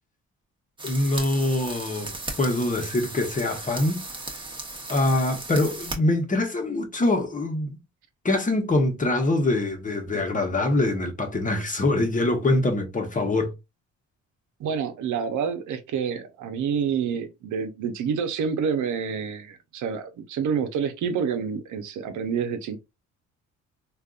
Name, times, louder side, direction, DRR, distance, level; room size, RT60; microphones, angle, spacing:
voice 1, 0.8-2.1 2.4-4.1 4.9-7.8 8.2-13.5, left 2 dB, 25° left, 1.1 m, -24 dB
sound 1, 0.8-6.0, right 2 dB, 15° right, 1.0 m, -36 dB
voice 2, 14.6-22.8, right 6 dB, 75° right, 0.8 m, -28 dB
3.5 x 2.5 x 2.4 m
cardioid pair, 90°, 30 cm